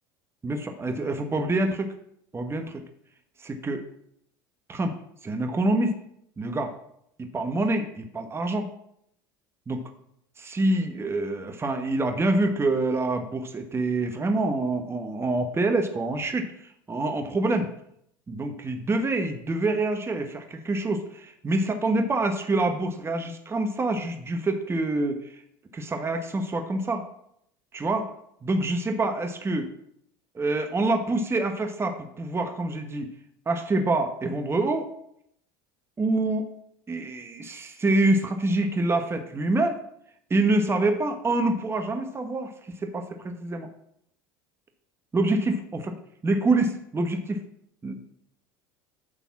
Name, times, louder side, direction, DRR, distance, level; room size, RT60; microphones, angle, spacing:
voice 1, 0.4-1.9 2.3-2.8 3.4-3.8 4.7-5.0 5.2-5.9 6.4-6.7 7.2-8.7 9.7-9.8 10.4-17.7 18.3-25.4 25.7-27.0 27.7-28.1 28.4-29.7 30.3-33.1 33.5-34.9 36.0-36.5 36.9-39.8 40.3-43.7 45.1-45.9 46.2-47.4 47.8-48.0, right 2 dB, 20° right, 6 dB, 1.2 m, -26 dB
9.8 x 4.1 x 7.1 m, 0.72 s
hypercardioid pair, 85°, 12 cm